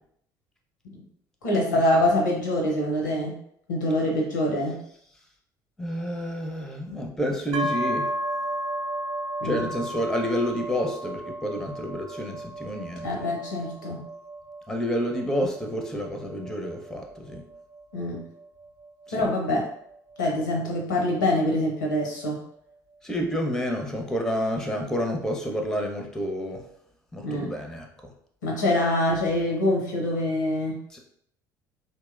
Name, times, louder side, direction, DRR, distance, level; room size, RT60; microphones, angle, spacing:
voice 1, 1.4-3.4 3.7-4.8 9.4-9.6 13.0-14.1 17.9-18.2 19.1-19.7 20.2-22.4 27.2-27.5 28.4-30.8, left 1 dB, 85° left, -1 dB, 0.6 m, -25 dB
voice 2, 5.8-8.1 9.4-13.3 14.7-17.4 19.1-19.3 23.0-26.7 27.1-28.1 30.9-31.0, equal, 5° left, 2 dB, 0.5 m, -29 dB
sound 1, 7.5-21.2, right 1 dB, 60° right, 0.4 m, -34 dB
2.8 x 2.1 x 2.3 m, 0.69 s
hypercardioid pair, 60°, 10 cm